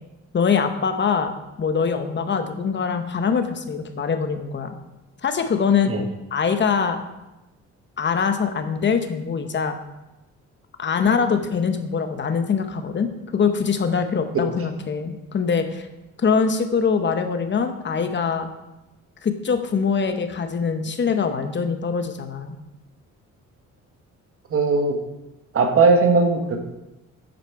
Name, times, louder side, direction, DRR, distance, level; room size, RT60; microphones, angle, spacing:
voice 1, 0.3-4.8 5.2-5.9 6.3-7.0 8.0-9.8 10.8-15.9 16.2-18.5 19.2-22.6, left 6 dB, 40° left, 7 dB, 0.9 m, -23 dB
voice 2, 24.5-24.9 25.5-26.6, right 4 dB, 50° right, 4 dB, 1.3 m, -18 dB
7.7 x 5.0 x 4.5 m, 0.99 s
cardioid pair, 90°, 30 cm